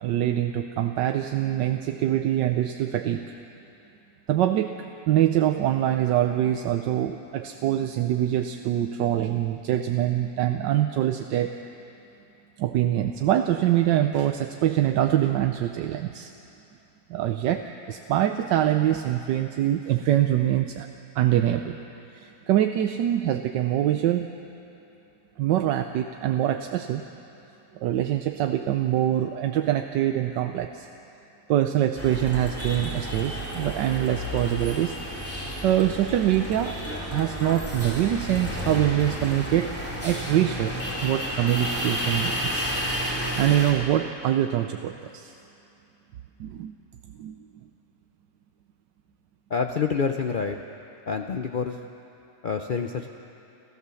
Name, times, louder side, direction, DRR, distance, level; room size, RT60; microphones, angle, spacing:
voice 1, 0.0-3.4 4.3-4.7 5.1-11.6 12.6-16.3 17.1-20.9 21.1-21.8 22.1-24.3 25.4-27.0 27.7-30.9 31.5-35.0 35.3-36.8 37.1-39.8 40.0-40.8 41.0-42.7 43.4-45.3 46.4-46.7 47.2-47.4, right 12 dB, 85° right, 6 dB, 1.3 m, -24 dB
sound 1, 32.0-43.7, equal, 5° left, 3.4 m, -31 dB
voice 2, 49.5-50.6 51.1-51.8 52.4-53.1, left 5 dB, 70° left, 4 dB, 0.4 m, -27 dB
29.0 x 13.5 x 7.0 m, 2.9 s
omnidirectional pair, 1.9 m